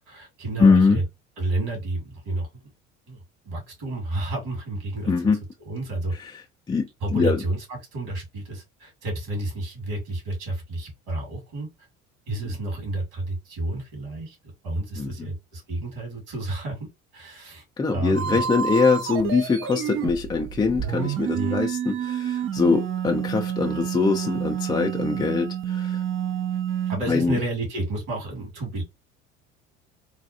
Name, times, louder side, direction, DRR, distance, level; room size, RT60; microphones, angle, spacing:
voice 1, 0.1-1.0 1.4-2.5 3.1-3.2 3.4-5.1 5.7-6.1 7.0-11.7 12.3-14.4 14.6-17.6 17.9-18.4 21.3-21.6 26.9-28.8, right 2 dB, 60° right, 2.3 m, -30 dB
voice 2, 0.6-1.0 5.1-5.4 6.2-6.4 6.7-7.4 12.4-12.5 15.0-15.3 17.8-26.0 27.1-27.4, left 4 dB, 15° left, 0.4 m, -23 dB
sound 1, 18.1-27.0, right 9 dB, 35° right, 0.5 m, -29 dB
3.4 x 2.3 x 2.7 m
hypercardioid pair, 65°, 34 cm